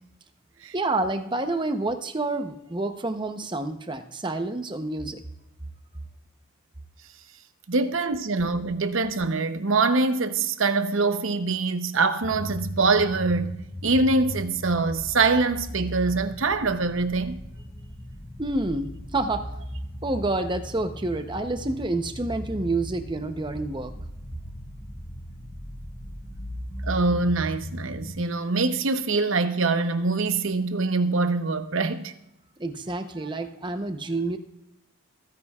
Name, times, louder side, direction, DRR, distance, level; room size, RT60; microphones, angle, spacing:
voice 1, 0.7-5.2 18.4-19.5 20.0-23.9 32.6-34.4, right 2 dB, 20° right, 0.7 m, -28 dB
voice 2, 7.7-17.4 26.8-32.1, right 3 dB, 60° right, 0.8 m, -24 dB
sound 1, 12.2-28.1, equal, 10° left, 2.1 m, -37 dB
25.5 x 9.7 x 2.4 m
head